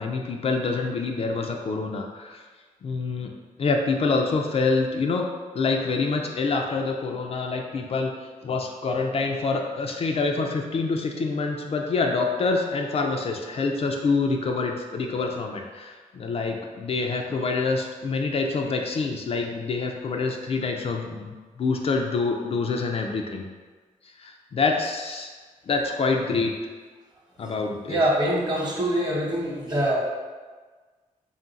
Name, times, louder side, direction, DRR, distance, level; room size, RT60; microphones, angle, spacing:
voice 1, 0.0-2.4 2.8-3.3 3.6-5.3 5.5-8.1 8.4-23.4 24.2-25.3 25.7-26.5 27.4-28.0, left 4 dB, 45° left, 2 dB, 0.4 m, -26 dB
voice 2, 27.9-30.0, right 1 dB, 30° right, -3 dB, 1.0 m, -24 dB
3.7 x 2.4 x 3.9 m, 1.4 s
cardioid pair, 110°, 14 cm